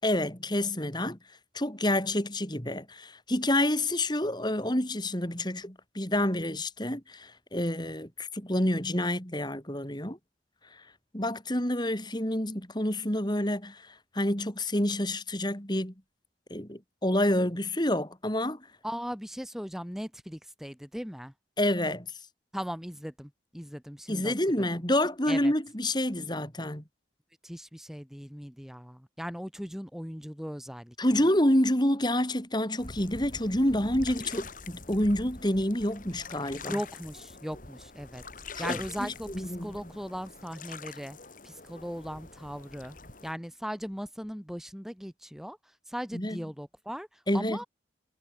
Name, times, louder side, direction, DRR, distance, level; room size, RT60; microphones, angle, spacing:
voice 1, 0.0-1.2 1.5-10.2 10.7-10.8 11.1-15.9 16.5-18.6 21.6-22.1 24.1-26.8 31.0-36.7 38.6-39.7 46.1-46.4 47.3-47.6, left 1 dB, 25° left, 4.1 m, -28 dB
voice 2, 18.8-21.3 22.5-24.7 25.3-25.5 27.4-31.0 36.6-38.2 38.6-41.2 41.4-43.0 43.2-47.7, equal, ahead, 4.1 m, -38 dB
sound 1, 32.8-43.3, left 4 dB, 45° left, 4.9 m, -44 dB
head